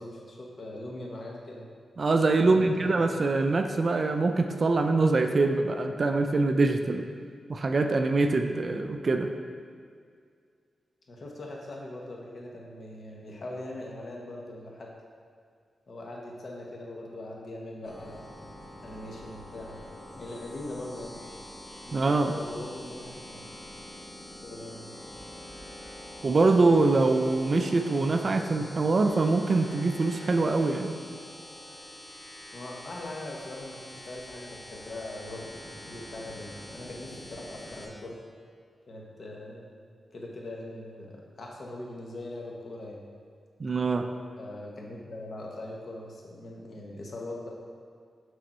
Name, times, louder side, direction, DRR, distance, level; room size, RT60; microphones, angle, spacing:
voice 1, 0.0-1.7 2.4-3.2 11.1-14.9 15.9-18.3 18.8-19.8 20.1-21.2 21.8-23.5 24.4-24.9 32.5-35.4 35.9-38.2 38.9-39.7 40.1-41.1 41.4-43.0 44.4-47.5, left 1 dB, 50° left, -1 dB, 1.1 m, -41 dB
voice 2, 2.0-7.1 7.5-9.3 21.9-22.3 26.2-31.0 43.6-44.1, right 3 dB, 40° right, 6 dB, 0.4 m, -24 dB
sound 1, 17.9-37.9, left 1 dB, 25° left, 1.4 m, -45 dB
6.5 x 6.2 x 4.3 m, 2.1 s
wide cardioid pair, 135°, 0 cm